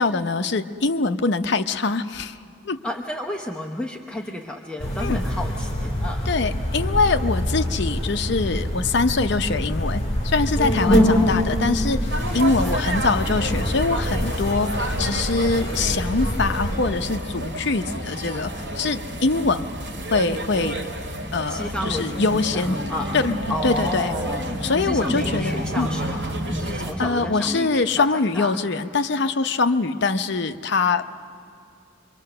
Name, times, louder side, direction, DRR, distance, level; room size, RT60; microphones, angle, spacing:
voice 1, 0.0-2.4 2.7-2.8 5.0-5.2 6.3-12.1 12.3-19.7 20.1-20.9 21.3-22.8 23.1-24.1 24.6-25.9 27.0-31.1, left 3 dB, 55° left, 9 dB, 0.7 m, -23 dB
voice 2, 2.8-6.3 10.8-11.7 12.3-12.9 21.4-23.2 23.5-28.1 28.3-28.6, left 1 dB, 5° left, 1 dB, 0.7 m, -32 dB
sound 1, 4.8-16.8, equal, 30° left, 3.9 m, -25 dB
sound 2, 12.1-26.9, right 1 dB, 60° right, 2.3 m, -30 dB
24.5 x 23.5 x 6.7 m, 2.4 s
head